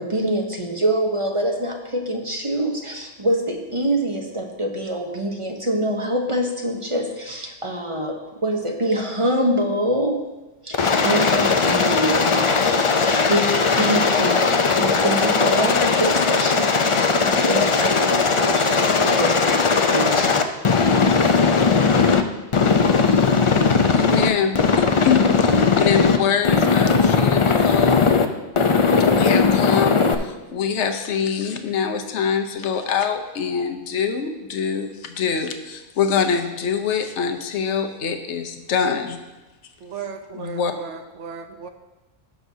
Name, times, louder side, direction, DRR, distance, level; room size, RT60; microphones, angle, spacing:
voice 1, 0.0-10.2 10.6-13.5 13.8-14.5 14.8-20.4, right 1 dB, 30° right, 2 dB, 0.8 m, -25 dB
Aircraft, 10.7-22.2 22.5-24.3 24.5-26.2 26.4-28.2 28.6-30.1, left 5 dB, 45° left, 0.4 m, -18 dB
voice 2, 21.6-22.2 39.8-41.7, right 5 dB, 75° right, 6 dB, 1.0 m, -36 dB
voice 3, 23.9-28.1 29.0-39.2 40.4-40.7, left 6 dB, 70° left, 6 dB, 1.1 m, -24 dB
18.0 x 6.1 x 2.7 m, 1.1 s
omnidirectional pair, 1.2 m